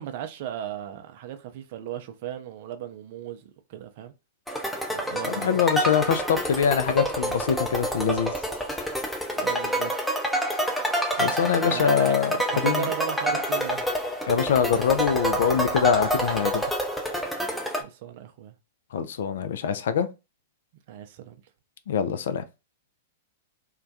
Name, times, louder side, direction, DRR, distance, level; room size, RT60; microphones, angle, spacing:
voice 1, 0.0-4.1 5.1-5.5 9.4-9.9 11.7-12.1 12.5-13.9 17.8-18.5 20.9-21.4, right 10 dB, 55° right, 0.4 m, -36 dB
sound 1, 4.5-17.8, equal, 5° left, 0.6 m, -28 dB
voice 2, 5.2-8.3 11.2-12.9 14.3-16.6 18.9-20.1 21.9-22.5, left 7 dB, 65° left, 0.3 m, -24 dB
2.2 x 2.1 x 2.6 m
hypercardioid pair, 105°, 0 cm